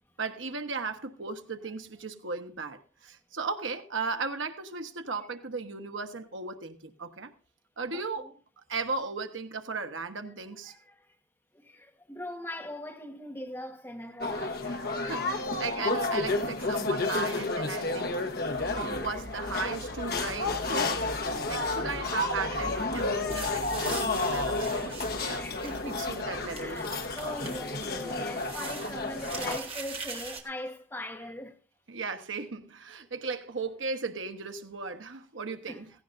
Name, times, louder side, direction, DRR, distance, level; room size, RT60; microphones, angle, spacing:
voice 1, 0.2-7.3 7.8-8.3 8.7-10.7 14.6-18.1 18.7-26.8 31.9-35.9, right 4 dB, 80° right, 1.2 m, -36 dB
voice 2, 7.9-8.3 10.7-10.9 11.6-14.6 19.0-19.1 25.4-31.6 35.7-35.8, left 1 dB, 10° left, 1.4 m, -41 dB
sound 1, 14.2-29.6, left 3 dB, 50° left, 1.2 m, -31 dB
sound 2, 18.5-28.4, equal, 45° right, 2.8 m, -45 dB
sound 3, 23.3-30.4, right 4 dB, 30° right, 1.9 m, -43 dB
16.5 x 16.0 x 2.6 m
head